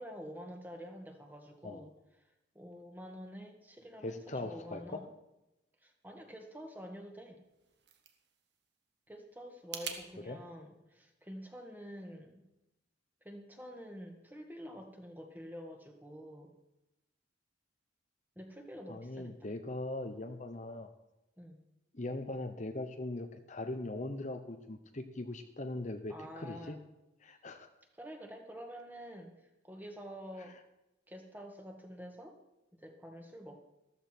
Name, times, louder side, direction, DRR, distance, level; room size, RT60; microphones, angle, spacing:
voice 1, 0.0-1.9 2.6-5.1 5.8-7.4 9.1-12.4 13.2-16.5 18.4-19.5 21.4-21.6 26.1-26.8 27.9-29.3 29.6-30.6 31.1-32.4 32.7-33.6, equal, 10° right, 3 dB, 1.7 m, -48 dB
voice 2, 4.0-5.1 10.2-10.4 18.9-20.9 21.9-26.8 27.2-27.7, left 2 dB, 40° left, 6 dB, 0.9 m, -40 dB
sound 1, 7.4-10.0, right 7 dB, 55° right, 1.6 m, -47 dB
14.0 x 14.0 x 4.5 m, 0.93 s
head